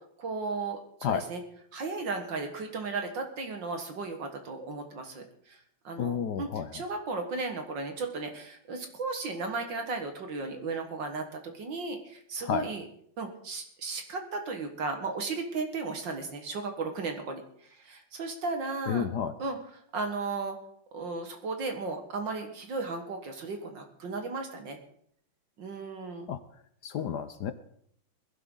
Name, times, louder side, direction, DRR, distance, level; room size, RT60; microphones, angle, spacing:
voice 1, 0.2-1.4 1.7-5.6 5.8-12.8 13.2-17.4 17.7-19.1 19.4-19.6 19.9-20.6 20.9-24.8 25.6-26.3, right 3 dB, 65° right, 5 dB, 2.2 m, -35 dB
voice 2, 6.0-6.8 12.4-12.7 18.9-19.3 26.3-26.4 26.8-27.5, left 8 dB, 65° left, 11 dB, 1.2 m, -31 dB
20.5 x 12.0 x 3.9 m, 0.66 s
omnidirectional pair, 2.2 m